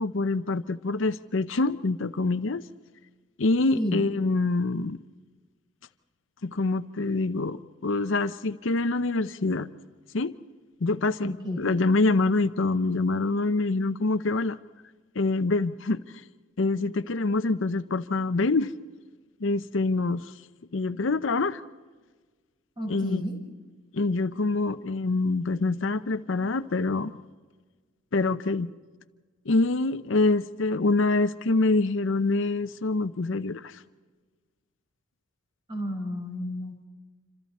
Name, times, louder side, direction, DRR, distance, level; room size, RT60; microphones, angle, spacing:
voice 1, 0.0-2.6 3.4-5.0 6.4-9.7 10.1-10.3 10.8-14.6 15.2-16.0 16.6-18.7 19.4-20.3 20.7-21.6 22.9-23.3 23.9-27.1 28.1-28.7 29.5-33.7, left 3 dB, 70° left, 0.7 m, -25 dB
voice 2, 11.2-11.6 22.8-23.4 35.7-36.9, left 1 dB, 25° right, 5.2 m, -31 dB
27.5 x 26.5 x 4.2 m
head